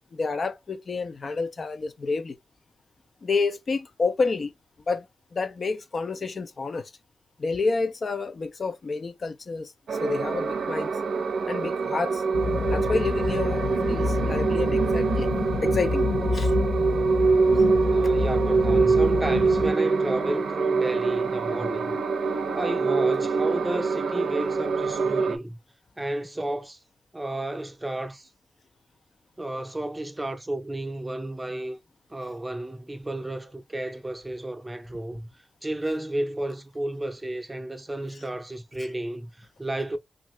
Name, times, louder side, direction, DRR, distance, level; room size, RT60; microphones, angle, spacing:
voice 1, 0.1-2.4 3.2-4.5 4.9-5.1 5.3-6.9 7.4-9.7 10.0-10.9 11.5-12.2 12.7-15.3 15.6-16.5 17.5-17.6, left 4 dB, 55° left, 0.4 m, -29 dB
sound 1, 9.9-25.4, right 4 dB, 80° right, 0.5 m, -24 dB
sound 2, 12.3-19.7, left 4 dB, 90° left, 0.7 m, -28 dB
voice 2, 17.9-22.0 22.5-25.6 26.0-26.8 27.1-28.3 29.4-31.8 32.1-35.3 35.6-40.0, right 1 dB, 15° right, 0.6 m, -32 dB
2.7 x 2.4 x 3.1 m
cardioid pair, 70°, 0 cm